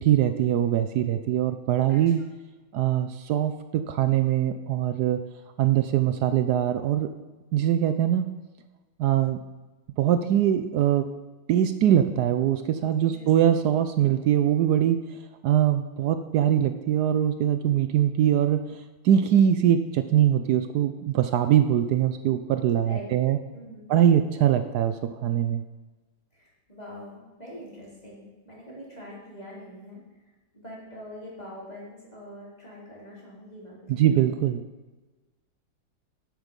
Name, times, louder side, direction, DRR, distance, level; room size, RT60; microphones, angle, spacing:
voice 1, 0.0-2.2 2.7-5.2 5.6-7.1 7.5-8.3 9.0-9.4 10.0-11.0 11.5-15.0 15.4-18.8 19.0-23.4 23.9-25.6 34.0-34.6, right 10 dB, 75° right, 9 dB, 0.9 m, -22 dB
voice 2, 13.0-13.7 22.8-23.1 23.5-23.9 26.3-30.3 30.5-34.2, left 1 dB, 20° left, -6 dB, 3.3 m, -44 dB
10.5 x 8.0 x 5.3 m, 1.2 s
omnidirectional pair, 2.2 m